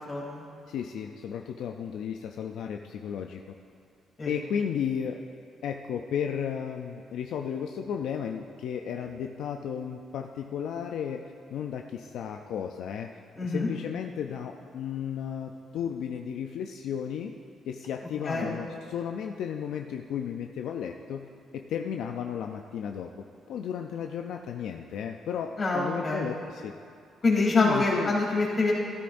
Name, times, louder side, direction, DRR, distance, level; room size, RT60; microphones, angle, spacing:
voice 1, 0.1-0.4 4.2-4.3 13.4-13.7 18.2-18.5 25.6-26.3 27.2-28.7, left 3 dB, 40° left, -4 dB, 3.0 m, -26 dB
voice 2, 0.7-3.4 4.3-5.2 5.6-17.3 17.7-23.1 23.5-26.7 27.5-28.1, left 8 dB, 80° left, 4 dB, 0.4 m, -34 dB
13.5 x 12.5 x 2.6 m, 2.4 s
cardioid pair, 90°, 0 cm